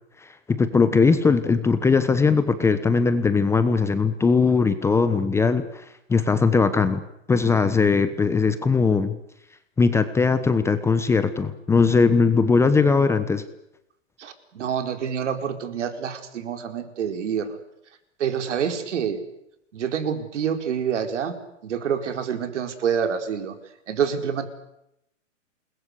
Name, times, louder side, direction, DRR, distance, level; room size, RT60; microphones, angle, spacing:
voice 1, 0.2-5.8 6.1-7.0 7.3-9.1 9.8-13.4, left 4 dB, 5° left, 11 dB, 1.0 m, -20 dB
voice 2, 14.2-17.6 18.2-19.2 19.7-21.4 21.6-23.5 23.9-24.5, right 7 dB, 65° right, 7 dB, 4.8 m, -27 dB
28.0 x 21.0 x 8.3 m, 0.79 s
hypercardioid pair, 145°, 38 cm